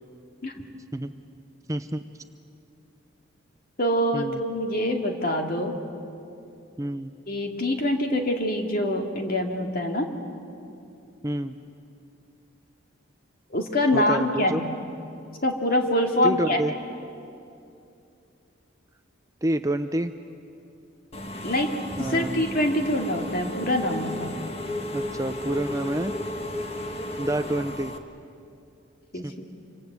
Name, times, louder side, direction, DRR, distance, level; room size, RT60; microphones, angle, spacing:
voice 1, 1.7-2.0 4.1-4.4 6.8-7.1 11.2-11.6 13.9-14.6 16.2-16.7 19.4-20.1 22.0-22.4 24.9-26.1 27.2-27.9 29.2-29.3, right 1 dB, 15° right, 9 dB, 0.6 m, -28 dB
voice 2, 3.8-5.7 7.3-10.1 13.5-14.7 15.4-16.6 21.4-21.7 22.0-24.4 29.1-29.3, left 1 dB, 45° left, 2 dB, 2.4 m, -25 dB
Engine / Mechanisms, 21.1-28.0, left 1 dB, 30° left, 1.5 m, -34 dB
26.5 x 25.5 x 8.1 m, 2.6 s
head